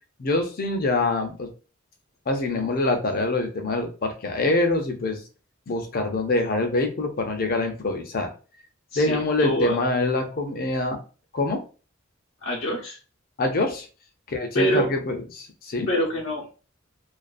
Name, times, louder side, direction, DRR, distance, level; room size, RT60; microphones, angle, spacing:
voice 1, 0.2-1.5 2.3-5.2 5.7-8.3 9.0-11.0 11.3-11.6 13.4-13.9 14.3-15.9, left 2 dB, 45° left, 5 dB, 0.5 m, -25 dB
voice 2, 8.9-9.8 12.4-13.0 14.5-14.8 15.9-16.5, equal, 80° left, -4 dB, 0.7 m, -25 dB
2.4 x 2.3 x 2.5 m, 0.36 s
head